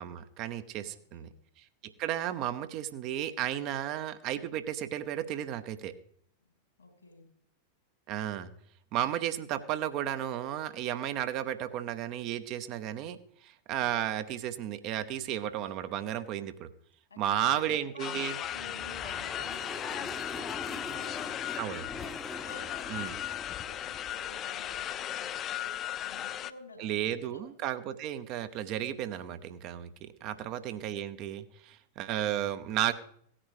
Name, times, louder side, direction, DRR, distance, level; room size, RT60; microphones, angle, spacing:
voice 1, 0.0-1.3 1.8-5.9 8.1-8.5 8.9-13.2 13.4-16.7 17.2-18.4 21.6-21.8 22.9-23.1 26.8-32.9, right 11 dB, 40° right, 10 dB, 0.8 m, -33 dB
voice 2, 0.8-1.3 6.4-7.3 17.1-18.2 18.5-27.4 30.2-30.8, left 2 dB, 80° left, 3 dB, 3.2 m, -51 dB
sound 1, 18.0-26.5, left 11 dB, 30° left, 0.5 m, -37 dB
sound 2, 18.3-24.8, left 1 dB, 5° left, 0.9 m, -44 dB
16.5 x 9.9 x 3.2 m, 0.64 s
figure-of-eight pair, 90°, 0 cm